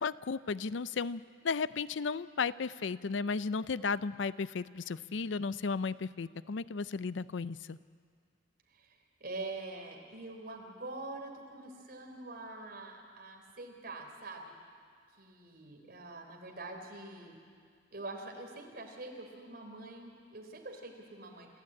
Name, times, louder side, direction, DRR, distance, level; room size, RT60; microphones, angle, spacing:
voice 1, 0.0-7.8, left 5 dB, 80° left, 16 dB, 0.5 m, -34 dB
voice 2, 8.7-14.5 15.2-17.4 17.9-21.5, right 2 dB, 55° right, 2 dB, 3.5 m, -45 dB
28.5 x 13.5 x 8.6 m, 2.1 s
head